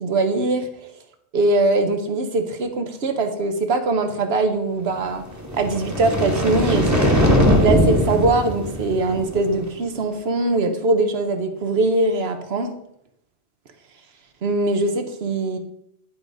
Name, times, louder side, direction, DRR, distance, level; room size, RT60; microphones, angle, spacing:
voice 1, 0.0-0.9 1.3-5.2 5.5-7.2 7.6-12.7 14.4-15.6, right 2 dB, 75° right, 7 dB, 1.2 m, -22 dB
sound 1, 5.3-9.6, equal, 15° right, 1.2 m, -20 dB
10.0 x 4.8 x 4.0 m, 0.76 s
omnidirectional pair, 1.1 m